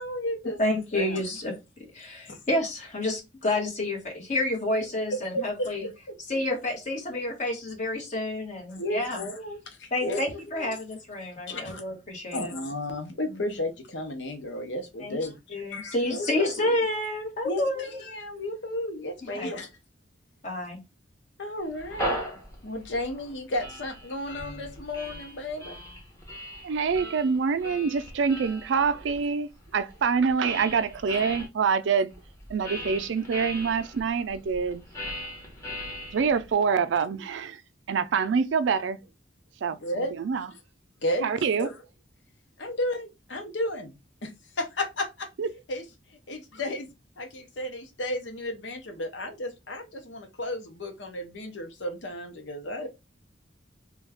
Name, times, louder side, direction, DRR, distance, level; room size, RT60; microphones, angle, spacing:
voice 1, 0.0-0.6 0.9-1.2 2.3-2.4 5.1-6.2 8.7-10.8 11.5-11.8 12.3-15.4 15.7-16.5 17.4-19.7 21.4-22.2 22.6-25.8 30.8-30.9 39.8-40.5 41.0-41.3 41.6-41.8 42.6-43.9 44.2-44.3 44.6-45.3 45.7-45.8 46.3-46.9 47.2-52.9, left 1 dB, 80° left, 0.8 m, -33 dB
voice 2, 0.6-1.6 1.9-5.8 6.3-9.2 9.9-12.5 15.0-15.2 15.5-18.0 19.2-19.5 20.4-20.8, left 1 dB, 40° left, 1.3 m, -29 dB
sound 1, 21.7-31.5 32.1-36.5, equal, 15° left, 1.1 m, -39 dB
voice 3, 26.6-32.1 32.5-34.8 36.1-37.6 37.9-39.0 39.6-40.5 41.2-41.7 45.4-45.5, right 5 dB, 80° right, 0.4 m, -26 dB
3.1 x 2.3 x 3.5 m
head